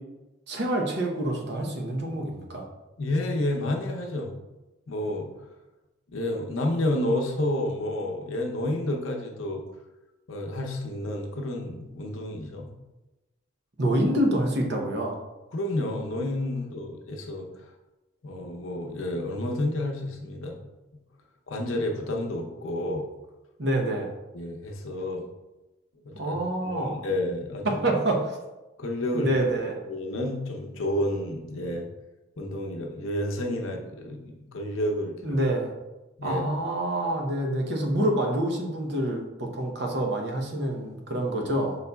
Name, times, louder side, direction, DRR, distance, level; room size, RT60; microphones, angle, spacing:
voice 1, 0.5-2.6 13.8-15.2 23.6-24.1 26.1-27.0 27.6-28.4 29.1-29.8 35.2-35.7 36.2-41.8, right 1 dB, 55° right, 1 dB, 0.8 m, -27 dB
voice 2, 3.0-4.3 4.9-5.3 6.1-9.6 10.3-12.7 15.5-17.5 18.2-20.5 21.5-23.1 24.3-25.2 26.0-26.3 26.6-27.8 28.8-29.3 29.9-31.9 32.4-35.4 36.2-36.4, left 1 dB, 90° left, 1 dB, 0.7 m, -30 dB
5.4 x 4.0 x 2.3 m, 1.1 s
head